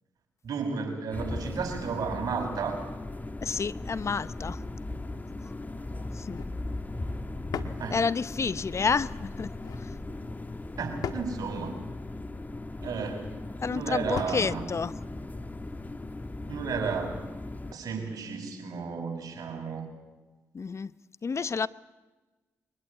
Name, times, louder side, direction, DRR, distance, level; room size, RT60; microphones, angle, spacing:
voice 1, 0.4-2.8 7.8-8.1 10.8-11.7 12.8-13.3 13.7-14.6 16.5-17.3 17.7-19.9, right 5 dB, 65° right, 6.0 m, -33 dB
sound 1, 1.1-17.7, left 2 dB, 25° left, 1.5 m, -38 dB
voice 2, 3.4-4.6 6.1-6.4 7.9-10.0 13.6-14.9 20.5-20.9 21.2-21.7, left 5 dB, 45° left, 0.7 m, -30 dB
sound 2, 6.2-6.6 7.5-7.9 9.4-9.8 11.0-11.4 12.8-13.2 14.2-14.5, left 7 dB, 70° left, 1.5 m, -37 dB
23.5 x 20.5 x 8.3 m
hypercardioid pair, 45°, 7 cm